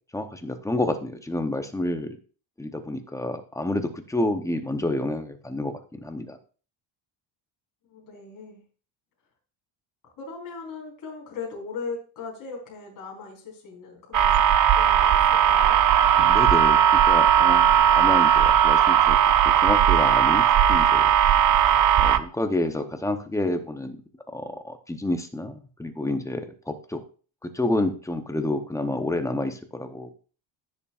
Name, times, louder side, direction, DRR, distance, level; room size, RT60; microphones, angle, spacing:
voice 1, 0.1-2.2 2.6-6.4 16.3-19.2 19.4-21.1 22.0-24.0 24.3-27.0 27.4-30.2, left 1 dB, 5° left, 6 dB, 0.7 m, -29 dB
voice 2, 7.9-8.6 10.0-14.4 14.7-15.8, left 4 dB, 40° left, -3 dB, 4.1 m, -38 dB
sound 1, 14.1-22.2, right 9 dB, 40° right, 0.6 m, -18 dB
15.5 x 7.1 x 2.4 m, 0.38 s
cardioid pair, 155°, 49 cm